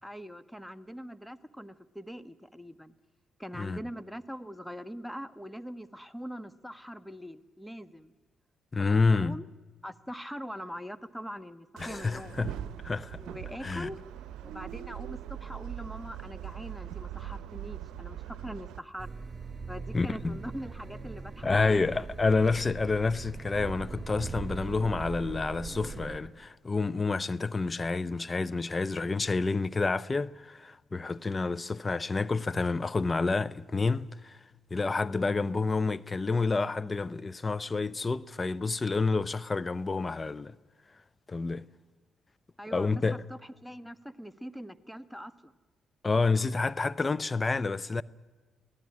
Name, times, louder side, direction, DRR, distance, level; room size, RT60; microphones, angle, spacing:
voice 1, 0.0-2.9 3.4-8.1 9.1-9.5 9.8-12.4 13.1-14.0 14.4-19.1 19.7-22.0 42.6-45.5, equal, ahead, 1.3 m, -42 dB
voice 2, 8.7-9.4 11.8-12.6 12.8-13.2 13.6-13.9 19.9-20.4 21.4-34.4 34.7-40.6 41.3-41.7 42.7-43.2 46.0-48.0, left 3 dB, 30° left, 0.7 m, -29 dB
sound 1, 11.8-18.8, right 11 dB, 75° right, 0.9 m, -41 dB
sound 2, 19.0-26.2, right 5 dB, 35° right, 4.3 m, -40 dB
24.5 x 17.0 x 9.8 m
hypercardioid pair, 50°, 0 cm